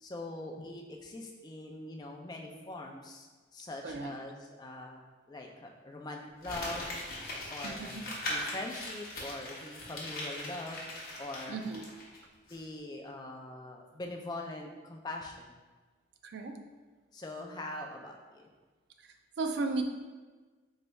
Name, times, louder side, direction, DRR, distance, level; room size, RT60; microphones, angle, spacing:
voice 1, 0.0-3.3 3.5-6.9 7.5-10.8 11.2-11.6 12.5-15.6 17.1-18.4, left 2 dB, 20° left, 1 dB, 0.3 m, -42 dB
voice 2, 3.8-4.2 7.6-8.1 11.5-11.9 16.3-16.7 19.4-19.8, right 3 dB, 65° right, 6 dB, 0.3 m, -35 dB
Crumpling crinkling, 6.4-12.2 12.5-12.6, left 1 dB, 50° left, 0.8 m, -40 dB
3.2 x 2.3 x 4.0 m, 1.3 s
head